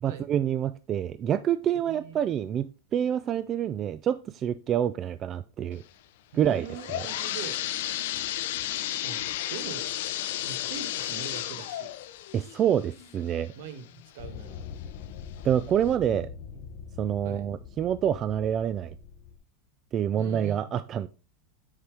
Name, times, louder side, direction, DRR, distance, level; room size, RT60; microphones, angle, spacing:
voice 1, 0.0-5.8 6.3-6.7 6.9-7.1 12.3-13.5 15.4-16.3 17.0-18.9 19.9-21.1, right 9 dB, 30° right, 0.3 m, -27 dB
voice 2, 1.8-2.2 6.3-7.6 9.0-9.2 9.5-9.9 10.4-11.9 13.5-13.9 14.1-14.6 16.5-16.6 17.2-17.5 20.2-20.7, right 7 dB, 75° right, 1.4 m, -41 dB
sound 1, 6.5-14.1 14.6-14.7 15.4-15.5 15.9-16.0, left 13 dB, 70° left, 0.6 m, -33 dB
sound 2, 14.2-19.4, left 7 dB, 50° left, 1.1 m, -43 dB
8.0 x 5.6 x 3.3 m
supercardioid pair, 145°, 0 cm